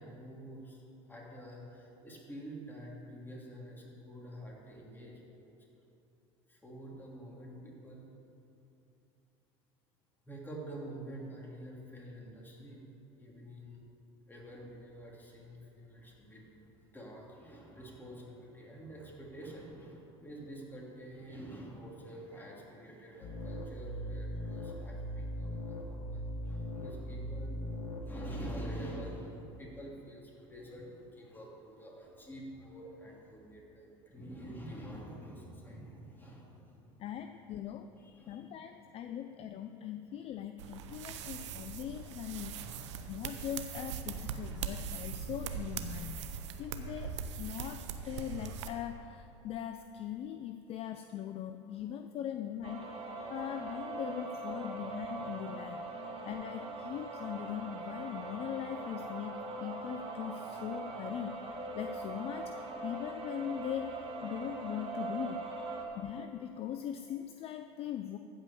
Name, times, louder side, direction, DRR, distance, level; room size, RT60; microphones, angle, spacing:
voice 1, 0.0-5.6 6.5-8.0 10.2-12.8 13.1-13.8 14.3-16.6 16.9-27.7 28.0-37.1 37.9-39.0 39.7-39.8 40.3-40.4 40.9-41.8 42.6-43.1 44.0-45.0 52.9-53.0 53.3-53.4 65.7-65.9, right 1 dB, 15° left, -3 dB, 3.0 m, -48 dB
sound 1, 23.2-28.8, equal, 90° left, 1.8 m, -39 dB
voice 2, 37.0-37.9 38.3-42.6 43.1-46.2 46.6-53.0 53.3-55.9 56.3-61.4 61.8-65.4 66.0-68.2, left 10 dB, 40° left, 9 dB, 0.5 m, -40 dB
sound 2, 40.6-48.7, right 6 dB, 85° right, 0.8 m, -41 dB
sound 3, 52.6-65.9, right 3 dB, 45° right, 2.5 m, -41 dB
14.5 x 5.3 x 7.0 m, 2.8 s
hypercardioid pair, 90°, 15 cm